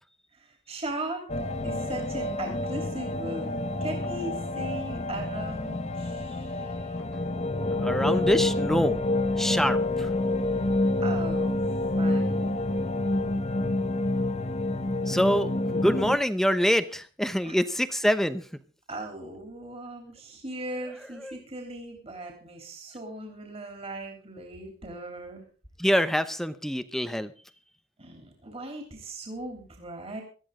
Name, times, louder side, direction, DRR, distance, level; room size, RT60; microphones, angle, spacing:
voice 1, 0.3-1.3 1.6-7.0 11.0-11.6 12.0-12.9 17.4-17.5 18.9-25.4 28.0-30.2, right 1 dB, 30° right, 3 dB, 3.4 m, -38 dB
sound 1, 1.3-16.2, left 2 dB, 35° left, 1.2 m, -28 dB
voice 2, 7.8-9.0 9.4-10.1 15.1-18.5 21.2-21.4 25.8-27.3, equal, ahead, 11 dB, 0.8 m, -25 dB
18.0 x 13.5 x 3.8 m, 0.40 s
head